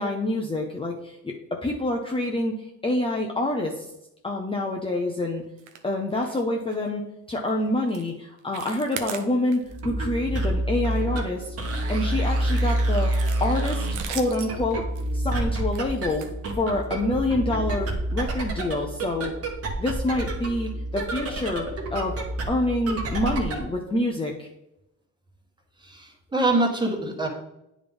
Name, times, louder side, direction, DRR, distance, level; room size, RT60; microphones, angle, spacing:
voice 1, 0.0-2.5 2.8-3.9 4.2-5.4 5.8-11.6 11.9-13.1 13.4-14.8 15.1-16.3 16.6-19.3 19.8-22.2 22.5-24.5, left 1 dB, 20° left, 0 dB, 0.7 m, -27 dB
sound 1, 5.6-5.8 6.1-6.4 6.7-6.9 7.3-7.5 7.9-8.1 8.4-9.8 10.2-10.4 10.7-11.9 12.4-17.0 17.7-17.9 18.3-18.4 18.8-18.9, right 8 dB, 85° right, 0.7 m, -40 dB
sound 2, 9.6-23.7, right 1 dB, 50° right, 1.3 m, -28 dB
voice 2, 25.8-27.3, right 2 dB, 15° right, 0 dB, 1.4 m, -24 dB
8.7 x 3.7 x 3.5 m, 0.85 s
cardioid pair, 90°, 30 cm